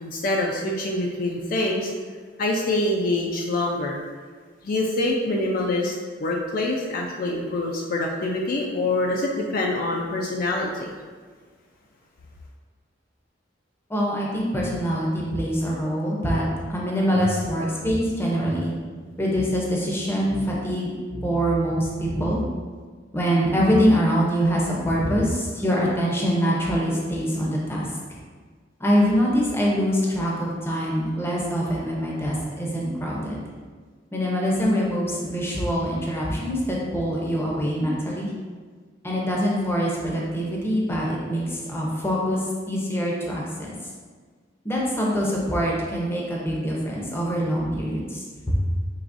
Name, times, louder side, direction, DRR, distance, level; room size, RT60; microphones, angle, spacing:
voice 1, 0.0-1.9 2.4-4.0 4.6-5.9 6.2-10.9, left 2 dB, 50° left, -1 dB, 0.4 m, -25 dB
voice 2, 13.9-16.4 16.7-18.7 19.2-20.9 21.2-22.4 23.1-27.9 28.8-33.4 34.1-38.3 39.0-42.4 42.7-43.5 44.6-48.6, equal, 15° left, -4 dB, 0.6 m, -24 dB
sound 1, 17.1-19.6 19.8-19.9 20.2-20.5 21.1-21.6 21.9-22.5 23.4-23.8 24.6-24.7 24.9-25.6, equal, 35° right, 0.6 m, -35 dB
4.7 x 3.0 x 2.5 m, 1.5 s
head